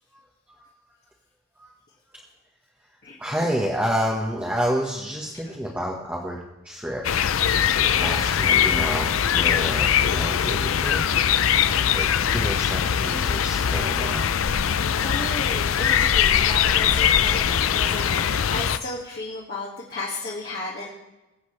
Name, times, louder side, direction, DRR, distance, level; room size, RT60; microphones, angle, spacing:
voice 1, 3.2-6.4 6.6-7.0 8.0-11.0 11.9-14.3, equal, 5° right, -3 dB, 1.3 m, -29 dB
sound 1, 7.0-18.8, left 8 dB, 90° left, 0.5 m, -21 dB
voice 2, 15.0-18.2 18.5-20.9, left 2 dB, 50° left, -6 dB, 2.0 m, -33 dB
22.0 x 8.0 x 3.3 m, 1.0 s
head